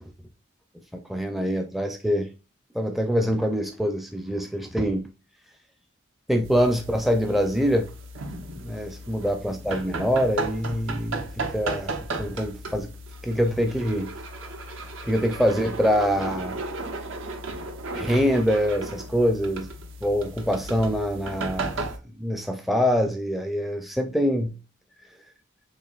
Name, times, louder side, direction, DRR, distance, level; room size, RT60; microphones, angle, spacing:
voice 1, 0.9-2.3 2.7-5.1 6.3-7.9 8.6-12.9 13.2-14.1 15.0-16.6 17.9-19.7 20.0-24.6, equal, ahead, 0.4 m, -25 dB
sound 1, 6.4-22.0, right 2 dB, 80° right, 0.8 m, -35 dB
6.7 x 2.6 x 2.4 m
head